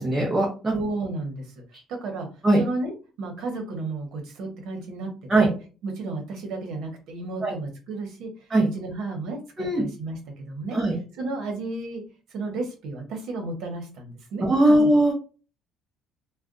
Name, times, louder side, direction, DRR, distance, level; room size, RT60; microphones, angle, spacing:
voice 1, 0.0-0.8 2.4-2.6 5.3-5.5 7.4-7.5 8.5-8.7 9.6-9.8 10.7-10.9 14.4-15.1, right 1 dB, 10° right, -3 dB, 0.7 m, -20 dB
voice 2, 0.7-1.5 1.9-2.3 2.6-5.1 5.4-5.5 5.8-8.5 8.7-10.8 11.2-12.0 12.3-14.8, right 3 dB, 65° right, 3 dB, 1.0 m, -33 dB
2.4 x 2.2 x 3.7 m, 0.34 s
cardioid pair, 165°, 0 cm